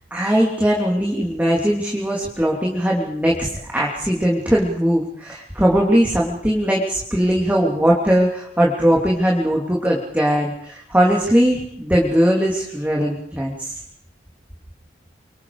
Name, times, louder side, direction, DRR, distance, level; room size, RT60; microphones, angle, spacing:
voice 1, 0.1-13.8, equal, 10° right, -3 dB, 3.1 m, -19 dB
29.0 x 24.5 x 5.0 m, 0.67 s
head